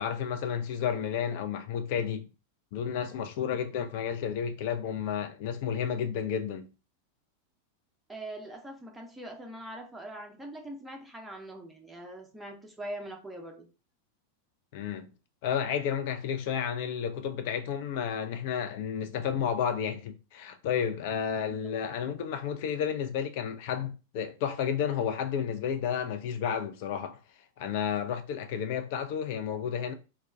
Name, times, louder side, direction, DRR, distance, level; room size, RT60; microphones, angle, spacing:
voice 1, 0.0-2.3 2.7-6.7 14.7-15.1 15.4-27.2 27.6-29.9, left 8 dB, 50° left, 0.4 m, -31 dB
voice 2, 8.1-13.7 21.5-21.8, right 1 dB, 5° right, 0.6 m, -42 dB
2.2 x 2.1 x 3.5 m
figure-of-eight pair, 90°, 0 cm